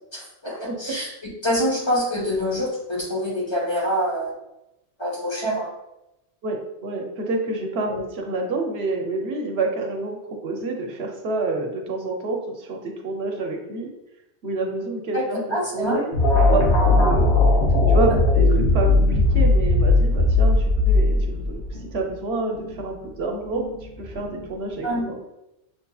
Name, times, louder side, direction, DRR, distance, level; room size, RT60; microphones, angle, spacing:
voice 1, 0.1-1.1 1.4-4.3 5.0-5.7 7.9-8.0 15.1-16.0 24.8-25.0, equal, 25° left, -5 dB, 0.9 m, -25 dB
voice 2, 6.4-10.2 10.4-13.9 14.4-15.4 15.7-16.1 16.5-17.3 17.9-21.6 21.9-23.6 24.0-25.2, right 2 dB, 70° right, 2 dB, 0.9 m, -28 dB
sound 1, 16.1-21.6, left 2 dB, 80° left, 1.4 m, -18 dB
sound 2, 18.7-24.9, left 2 dB, 50° left, 1.4 m, -35 dB
6.3 x 2.7 x 2.3 m, 0.90 s
omnidirectional pair, 1.1 m